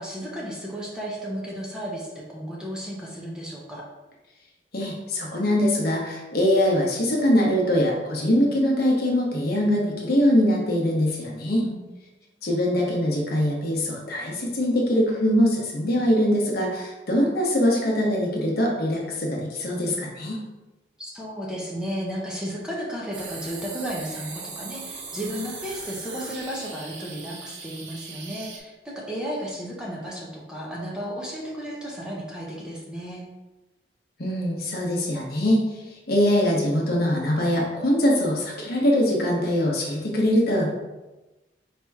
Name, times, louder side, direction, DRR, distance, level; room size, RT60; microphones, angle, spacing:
voice 1, 0.0-3.9 11.6-11.8 21.0-33.3, equal, 5° right, -4 dB, 0.7 m, -33 dB
voice 2, 4.7-11.7 12.4-20.4 34.2-35.6 36.1-40.7, equal, 55° left, -2 dB, 0.9 m, -22 dB
sound 1, 23.1-28.6, right 4 dB, 80° right, 0.8 m, -39 dB
4.3 x 2.9 x 3.5 m, 1.1 s
head